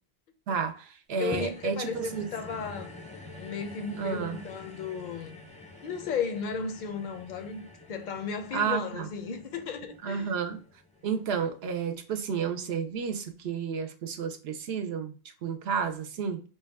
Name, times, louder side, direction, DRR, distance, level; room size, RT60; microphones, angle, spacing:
voice 1, 0.5-2.3 4.0-4.4 8.5-9.1 10.0-10.6 11.0-15.1 15.4-16.4, right 6 dB, 75° right, 0.8 m, -31 dB
voice 2, 1.2-2.9 3.4-5.4 5.8-10.3, left 6 dB, 55° left, 0.6 m, -35 dB
sound 1, 1.3-11.8 12.4-12.5, left 2 dB, 10° left, 0.4 m, -46 dB
3.1 x 2.2 x 3.3 m
omnidirectional pair, 1.1 m